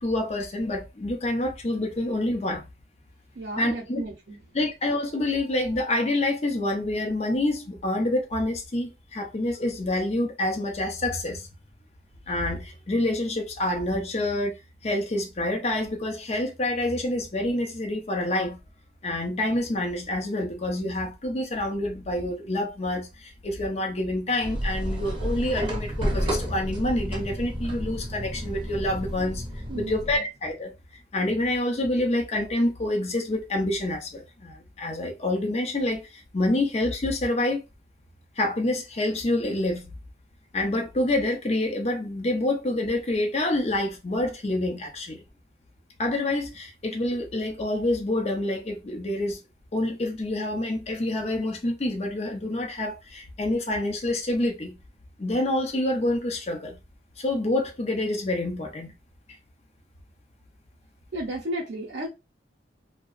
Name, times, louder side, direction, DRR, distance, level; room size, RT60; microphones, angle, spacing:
voice 1, 0.0-2.6 3.6-4.0 4.5-11.5 12.3-18.6 19.0-29.4 29.7-30.7 31.1-37.6 38.4-39.9 40.5-45.2 46.0-49.4 49.7-54.8 55.2-56.8 57.2-58.9, left 1 dB, 35° left, 0.5 m, -27 dB
voice 2, 3.3-4.4 29.7-30.0 61.1-62.1, right 1 dB, 70° right, 0.6 m, -33 dB
sound 1, 24.4-30.2, equal, 25° right, 0.6 m, -31 dB
2.7 x 2.0 x 2.4 m
head